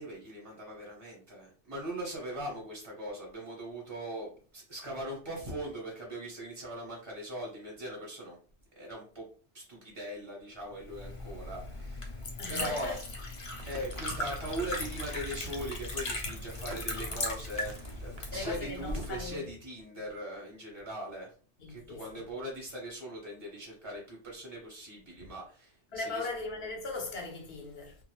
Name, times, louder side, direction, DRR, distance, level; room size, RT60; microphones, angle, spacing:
voice 1, 0.0-8.4 8.8-9.3 9.5-13.0 13.6-21.3 21.7-26.3, right 1 dB, 30° right, 0.9 m, -40 dB
Liquid, 10.8-19.3, left 2 dB, 40° left, 0.4 m, -38 dB
voice 2, 12.4-13.0 13.5-13.7 18.3-19.5 21.6-22.2 25.2-25.3 25.9-28.0, left 3 dB, 65° left, 1.0 m, -39 dB
sound 1, 13.5-18.7, right 1 dB, 70° right, 0.8 m, -46 dB
2.5 x 2.2 x 3.0 m
omnidirectional pair, 1.1 m